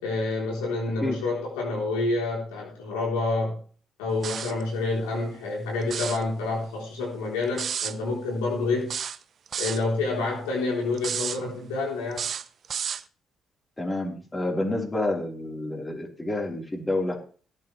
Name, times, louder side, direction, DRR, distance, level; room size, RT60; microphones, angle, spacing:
voice 1, 0.0-3.6 4.0-8.9 9.6-12.3, left 3 dB, 85° left, -2 dB, 3.9 m, -28 dB
sound 1, 4.2-4.6 5.8-6.2 7.6-8.0 8.9-9.8 11.0-11.4 12.1-13.0, right 8 dB, 55° right, 0.6 m, -31 dB
voice 2, 13.8-17.2, left 2 dB, 20° left, 0 dB, 4.4 m, -28 dB
17.5 x 9.2 x 3.4 m, 0.41 s
hypercardioid pair, 50°, 0 cm